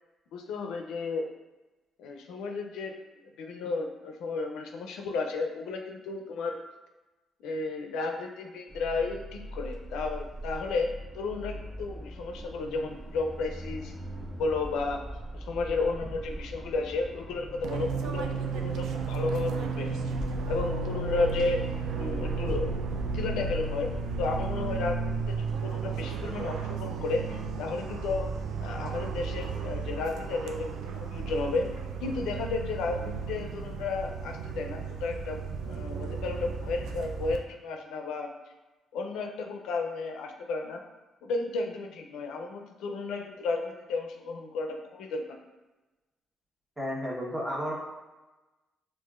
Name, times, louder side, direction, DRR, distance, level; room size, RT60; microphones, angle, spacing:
voice 1, 0.3-1.3 2.0-3.0 3.4-6.6 7.4-13.9 14.3-15.0 15.3-19.9 20.5-21.6 21.9-22.7 23.0-23.9 24.2-28.3 28.6-38.3 38.9-40.8 41.2-45.4, left 3 dB, 85° left, 3 dB, 0.4 m, -33 dB
sound 1, 8.7-25.5, right 1 dB, 25° right, 0.5 m, -39 dB
Fixed-wing aircraft airplane, 17.6-37.4, right 5 dB, 80° right, 0.3 m, -34 dB
voice 2, 46.8-47.7, equal, 10° right, -5 dB, 1.1 m, -32 dB
4.6 x 2.4 x 2.3 m, 1.1 s
cardioid pair, 90°, 0 cm